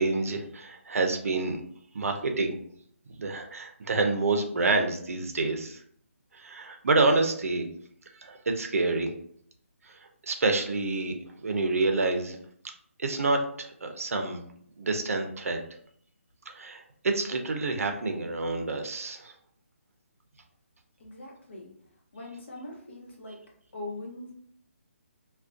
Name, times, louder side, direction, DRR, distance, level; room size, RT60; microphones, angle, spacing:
voice 1, 0.0-1.6 1.9-2.6 3.2-5.8 6.3-7.6 8.2-9.1 9.9-11.1 11.4-12.4 13.0-14.4 14.8-15.6 16.5-19.3, right 3 dB, 75° right, 4 dB, 0.5 m, -28 dB
voice 2, 21.0-21.7 22.1-23.4 23.7-24.3, left 2 dB, 55° left, -2 dB, 0.8 m, -41 dB
2.4 x 2.1 x 2.4 m, 0.64 s
hypercardioid pair, 170°, 8 cm